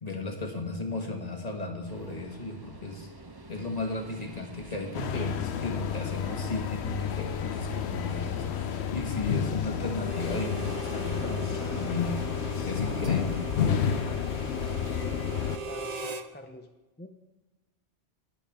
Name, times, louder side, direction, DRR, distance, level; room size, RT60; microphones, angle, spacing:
voice 1, 0.0-3.1 3.5-8.5 8.9-12.2 12.7-13.4, left 3 dB, 40° left, 2 dB, 1.6 m, -35 dB
sound 1, 1.9-13.4, right 2 dB, 25° right, 0.9 m, -46 dB
sound 2, 4.9-15.6, left 8 dB, 80° left, 0.9 m, -31 dB
Harmonica, 9.9-16.3, right 3 dB, 45° right, 0.7 m, -39 dB
voice 2, 14.4-15.2 15.6-16.7 17.0-17.1, left 2 dB, 10° left, 5 dB, 0.6 m, -46 dB
19.0 x 8.1 x 3.6 m, 1.1 s
omnidirectional pair, 1.1 m